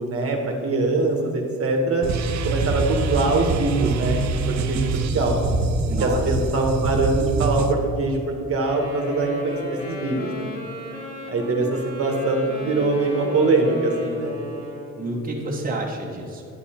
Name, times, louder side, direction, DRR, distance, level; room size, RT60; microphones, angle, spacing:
voice 1, 0.0-2.1 2.4-5.4 6.0-10.5 11.3-14.3, right 3 dB, 50° right, 1 dB, 1.4 m, -23 dB
sound 1, 2.0-7.7, right 3 dB, 65° right, 0.8 m, -24 dB
voice 2, 5.9-6.4 14.9-16.5, right 2 dB, 30° right, -2 dB, 1.4 m, -29 dB
Wind instrument woodwind instrument, 8.6-15.1, left 2 dB, 30° left, 2.3 m, -34 dB
9.7 x 7.4 x 4.3 m, 2.6 s
cardioid pair, 90°, 30 cm